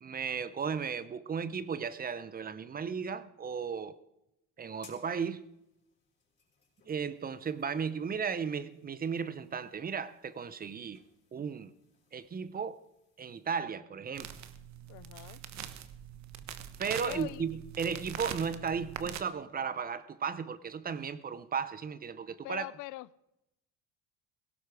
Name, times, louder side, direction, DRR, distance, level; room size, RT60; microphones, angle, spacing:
voice 1, 0.0-4.0 4.6-5.4 6.9-11.0 11.3-11.7 12.1-12.8 13.2-14.3 16.8-22.7, right 6 dB, 25° right, 0.7 m, -35 dB
sound 1, 4.6-13.6, left 5 dB, 30° left, 5.8 m, -65 dB
sound 2, 14.2-19.2, right 10 dB, 55° right, 1.2 m, -43 dB
voice 2, 14.9-15.4 16.9-17.4 22.4-23.1, left 17 dB, 60° left, 0.5 m, -42 dB
17.5 x 16.5 x 4.8 m
cardioid pair, 120°, 34 cm